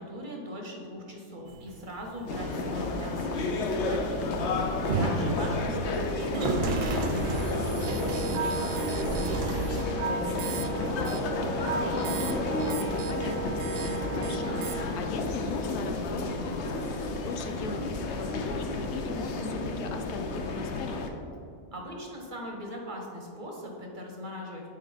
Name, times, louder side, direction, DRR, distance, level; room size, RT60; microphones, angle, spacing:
voice 1, 0.0-4.3 5.0-11.1 21.7-24.7, equal, 40° right, 0 dB, 0.8 m, -40 dB
sound 1, 1.5-9.8, right 3 dB, 70° right, 0.4 m, -33 dB
sound 2, 2.3-21.1, left 2 dB, 60° left, 0.8 m, -31 dB
sound 3, 7.8-14.9, right 6 dB, 90° right, 1.1 m, -35 dB
voice 2, 12.1-21.0, left 4 dB, 80° left, 6 dB, 1.1 m, -39 dB
8.7 x 4.8 x 4.0 m, 2.5 s
omnidirectional pair, 1.6 m